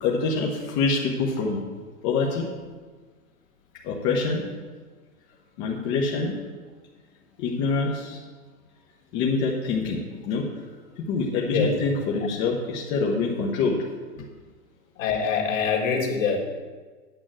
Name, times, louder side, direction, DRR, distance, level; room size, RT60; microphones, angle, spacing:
voice 1, 0.0-1.6 2.0-2.5 3.8-4.4 5.6-6.4 7.4-8.2 9.1-10.5 11.0-13.8, left 4 dB, 25° left, -2 dB, 1.1 m, -25 dB
voice 2, 11.5-11.8 15.0-16.4, left 6 dB, 55° left, 0 dB, 2.2 m, -24 dB
9.2 x 6.0 x 7.5 m, 1.4 s
hypercardioid pair, 145°, 46 cm